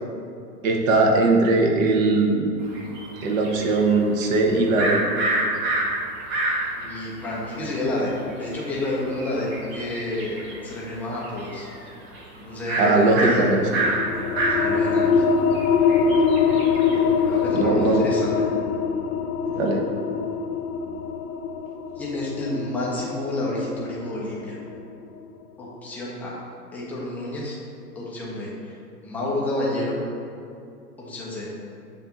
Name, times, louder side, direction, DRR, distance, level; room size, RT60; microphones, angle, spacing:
voice 1, 0.6-2.5 3.2-5.0 12.8-13.6 16.9-17.0 17.5-18.0 19.5-19.8, right 3 dB, 50° right, 1 dB, 1.0 m, -20 dB
sound 1, 2.7-6.9 7.3-7.4 7.6-10.7 11.0-11.9 12.1-12.2 12.7-17.4, right 2 dB, 25° right, 0.7 m, -28 dB
voice 2, 6.8-8.1 8.4-11.7 12.3-13.3 14.6-15.2 17.2-18.5 22.0-24.6 25.6-26.4 26.7-27.6 28.0-28.8 29.0-30.0 31.0-31.5, left 1 dB, 5° left, -6 dB, 0.4 m, -29 dB
sound 2, 13.8-25.1, left 6 dB, 70° left, 0.5 m, -23 dB
6.9 x 2.6 x 5.6 m, 2.5 s
figure-of-eight pair, 110°, 50 cm